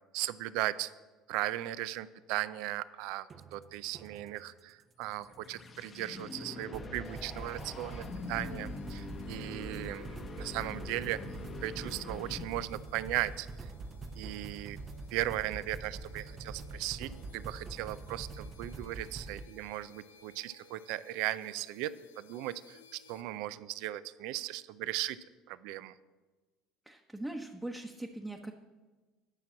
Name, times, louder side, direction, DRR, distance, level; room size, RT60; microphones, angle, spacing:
voice 1, 0.1-0.9 1.3-11.2 11.6-13.7 14.2-14.8 15.1-22.8 23.1-25.2 25.5-25.9, right 15 dB, 65° right, 16 dB, 0.4 m, -37 dB
sound 1, 3.3-4.5 6.7-19.4, right 3 dB, 35° right, 0.7 m, -45 dB
sound 2, 5.0-12.8, left 3 dB, 35° left, 1.0 m, -44 dB
sound 3, 7.0-23.2, left 6 dB, 85° left, 0.7 m, -61 dB
voice 2, 26.9-28.5, right 1 dB, 5° right, 1 dB, 1.0 m, -40 dB
10.0 x 5.9 x 7.1 m, 1.3 s
hypercardioid pair, 70°, 0 cm